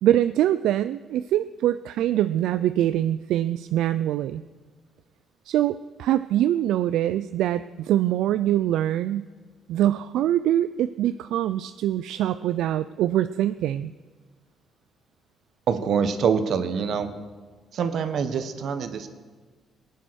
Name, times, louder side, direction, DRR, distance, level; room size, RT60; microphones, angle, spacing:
voice 1, 0.0-4.4 5.5-9.2 9.7-13.9, right 12 dB, 85° right, 13 dB, 0.3 m, -24 dB
voice 2, 15.7-17.1 17.7-19.1, right 6 dB, 65° right, 9 dB, 1.2 m, -25 dB
19.0 x 9.3 x 6.3 m, 1.4 s
cardioid pair, 90°, 0 cm